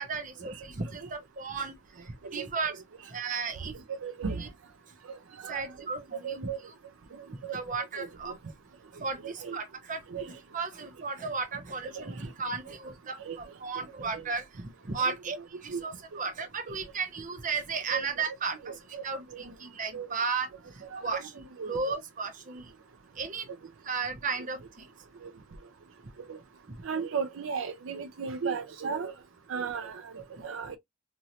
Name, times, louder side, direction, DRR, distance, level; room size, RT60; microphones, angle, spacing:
voice 1, 0.0-1.7 2.3-2.7 3.1-3.8 4.3-4.5 5.5-6.4 6.7-6.8 7.3-8.4 9.0-15.4 15.6-18.7 19.0-20.5 21.0-22.7 23.2-23.5 23.8-24.9, right 4 dB, 40° right, 0.8 m, -35 dB
voice 2, 3.9-4.4 5.1-5.2 5.4-5.7 6.2-6.6 7.2-7.6 8.0-8.3 9.2-9.6 10.1-10.3 12.0-12.1 12.7-12.8 13.2-13.4 14.0-14.3 15.0-15.1 15.7-15.8 17.9-18.4 18.6-19.0 19.3-19.4 19.9-20.1 20.9-21.2 21.6-21.7 25.2-25.3 26.3-26.4 26.8-29.1 29.5-30.8, right 6 dB, 75° right, 0.5 m, -36 dB
3.0 x 2.7 x 2.6 m
head